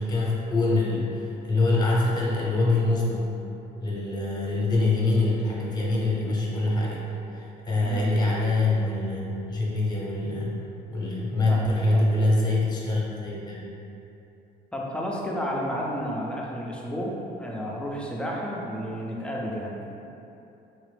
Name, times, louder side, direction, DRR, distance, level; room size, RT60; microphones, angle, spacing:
voice 1, 0.0-3.3 3.8-7.1 7.3-10.6 10.9-13.6, left 2 dB, 25° left, -4 dB, 0.8 m, -24 dB
voice 2, 7.8-8.2 11.5-12.1 14.7-19.8, equal, 5° left, -3 dB, 0.5 m, -32 dB
3.8 x 2.4 x 3.3 m, 2.9 s
cardioid pair, 110°, 17 cm